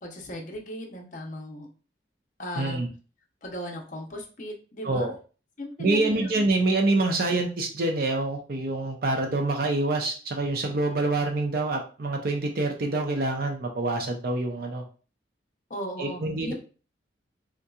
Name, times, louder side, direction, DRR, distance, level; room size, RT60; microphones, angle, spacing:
voice 1, 0.0-1.7 2.4-2.9 3.4-5.1 5.6-6.3 15.7-16.5, equal, 40° left, 0 dB, 0.7 m, -36 dB
voice 2, 2.6-2.9 4.8-5.1 5.8-14.8 16.0-16.5, right 2 dB, 50° right, 3 dB, 0.5 m, -26 dB
3.7 x 2.7 x 2.3 m, 0.36 s
head